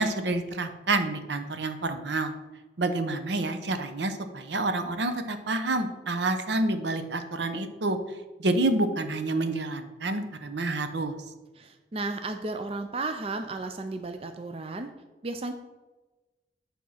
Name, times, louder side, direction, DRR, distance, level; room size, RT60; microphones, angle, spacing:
voice 1, 0.0-2.3 2.8-8.0 8.4-11.2, right 2 dB, 75° right, 8 dB, 0.7 m, -28 dB
voice 2, 11.6-14.9 15.2-15.5, right 3 dB, 30° right, 7 dB, 0.4 m, -34 dB
8.6 x 3.6 x 5.7 m, 1.2 s
head